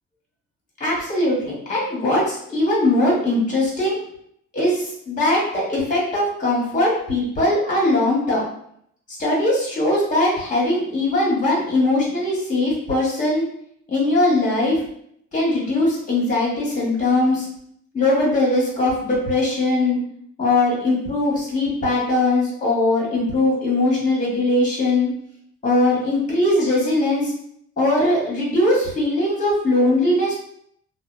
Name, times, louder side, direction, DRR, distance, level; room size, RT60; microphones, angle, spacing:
voice 1, 0.8-4.0 4.5-8.4 9.2-13.4 13.9-14.8 15.3-17.5 17.9-20.0 20.4-25.1 25.6-27.3 27.8-30.3, left 2 dB, 25° left, -5 dB, 1.4 m, -20 dB
2.6 x 2.3 x 2.4 m, 0.70 s
cardioid pair, 90°, 30 cm